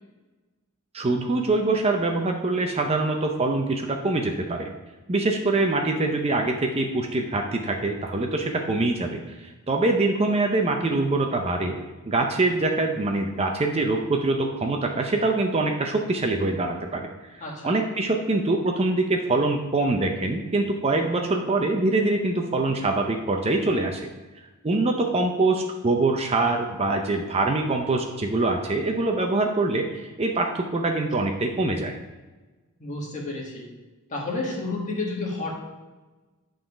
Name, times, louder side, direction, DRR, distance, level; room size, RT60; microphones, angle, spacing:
voice 1, 0.9-4.7 5.1-11.8 12.1-24.1 24.6-31.9, right 2 dB, 25° right, 3 dB, 0.5 m, -24 dB
voice 2, 17.4-17.7 32.8-33.7 34.1-35.5, left 2 dB, 35° left, -2 dB, 1.6 m, -30 dB
9.2 x 3.9 x 4.8 m, 1.2 s
head